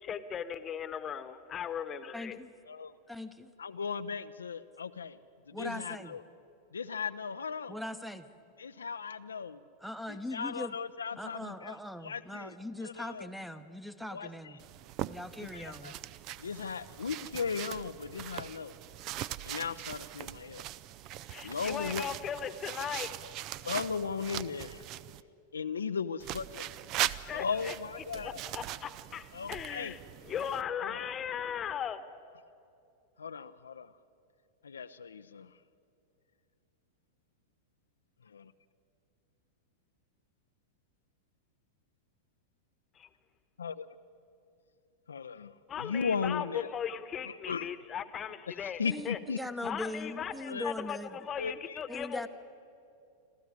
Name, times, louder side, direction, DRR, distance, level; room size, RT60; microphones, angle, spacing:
voice 1, 0.0-2.4 21.3-23.1 27.3-27.7 28.1-30.0 30.3-32.0 42.9-43.1 45.7-49.2 49.6-52.3, left 8 dB, 25° left, 12 dB, 1.1 m, -38 dB
voice 2, 2.1-2.5 3.1-3.5 5.5-6.2 7.7-8.3 9.8-10.7 11.2-14.6 15.1-16.0 48.8-51.2 51.9-52.3, left 1 dB, ahead, 12 dB, 1.0 m, -40 dB
voice 3, 3.6-5.2 5.5-6.2 6.7-7.8 8.6-9.6 10.1-11.8 12.0-12.5 12.8-13.3 14.1-14.5 15.4-15.9 16.4-18.8 19.4-20.6 21.4-22.1 23.6-24.8 25.5-26.6 27.3-28.4 29.3-29.9 30.8-31.1 33.2-33.9 34.6-35.5 38.2-38.5 43.6-43.9 45.1-46.7 47.2-47.7 48.5-49.4 50.5-50.7 51.4-51.8, left 5 dB, 70° left, 10 dB, 0.5 m, -37 dB
sound 1, 14.6-25.2 26.2-30.6, right 13 dB, 40° right, 0.5 m, -40 dB
26.0 x 14.0 x 9.6 m, 2.6 s
figure-of-eight pair, 90°, 0 cm